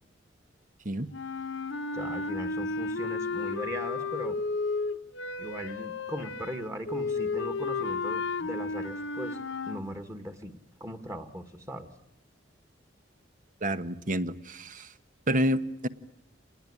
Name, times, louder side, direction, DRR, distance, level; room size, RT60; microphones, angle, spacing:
sound 1, 1.1-9.8, left 3 dB, 75° left, 1.1 m, -33 dB
voice 1, 1.9-4.4 5.4-9.4 9.7-11.9, equal, 15° right, 1.9 m, -39 dB
voice 2, 13.6-14.9 15.3-15.9, right 1 dB, 45° right, 1.1 m, -29 dB
27.5 x 20.0 x 9.9 m
head